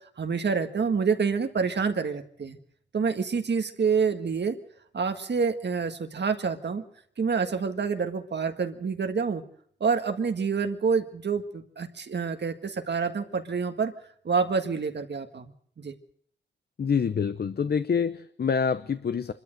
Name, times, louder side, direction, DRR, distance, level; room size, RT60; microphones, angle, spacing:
voice 1, 0.2-2.6 2.9-4.6 4.9-6.8 7.2-9.4 9.8-13.9 14.3-15.9, right 5 dB, 70° right, 7 dB, 1.7 m, -27 dB
voice 2, 16.8-19.3, left 6 dB, 60° left, 12 dB, 0.8 m, -26 dB
25.5 x 13.0 x 7.9 m, 0.63 s
wide cardioid pair, 120°, 19 cm